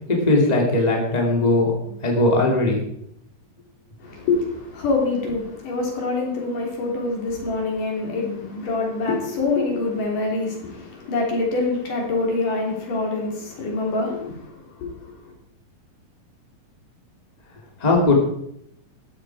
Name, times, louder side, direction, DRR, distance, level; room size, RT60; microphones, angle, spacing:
voice 1, 0.1-2.8 17.8-18.1, left 2 dB, 10° left, 2.7 m, -19 dB
voice 2, 4.0-14.4 14.8-14.9, left 3 dB, 65° left, 4.9 m, -25 dB
14.5 x 12.0 x 5.0 m
omnidirectional pair, 4.0 m